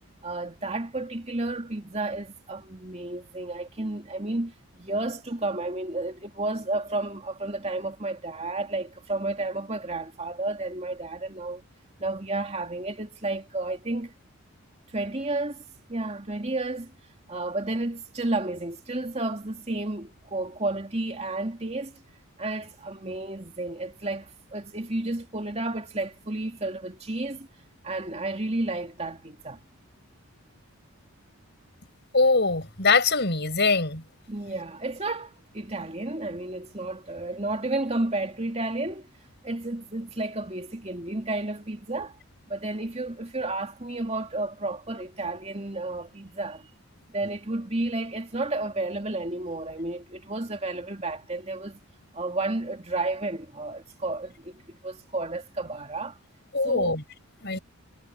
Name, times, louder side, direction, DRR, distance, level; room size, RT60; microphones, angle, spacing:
voice 1, 0.2-11.6 12.0-14.1 14.9-15.6 15.9-16.9 17.3-21.9 22.4-27.5 27.8-29.7 34.3-39.1 39.4-42.2 42.5-46.7 47.1-51.8 52.1-56.2 56.6-56.9 57.5-57.6, right 2 dB, 30° right, 2.7 m, -32 dB
voice 2, 32.1-34.0 56.5-57.0 57.4-57.6, left 4 dB, 50° left, 6.3 m, -22 dB
head